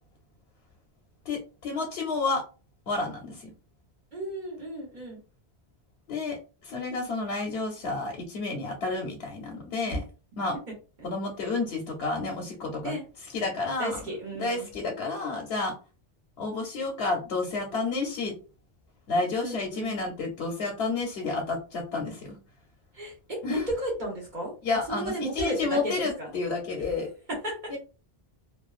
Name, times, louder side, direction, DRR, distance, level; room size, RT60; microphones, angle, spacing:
voice 1, 1.3-2.4 2.9-3.5 6.1-6.4 6.6-10.0 10.4-10.6 11.0-13.0 13.2-14.0 14.4-15.7 16.4-18.3 19.1-22.4 23.4-23.7 24.6-27.1 27.7-27.8, left 3 dB, 85° left, 1 dB, 0.8 m, -30 dB
voice 2, 4.1-5.2 9.9-10.0 12.8-13.0 13.8-14.7 19.4-19.9 22.9-24.5 24.9-26.3 27.3-27.6, right 1 dB, 50° right, -3 dB, 1.1 m, -33 dB
2.4 x 2.2 x 2.3 m, 0.35 s
omnidirectional pair, 1.1 m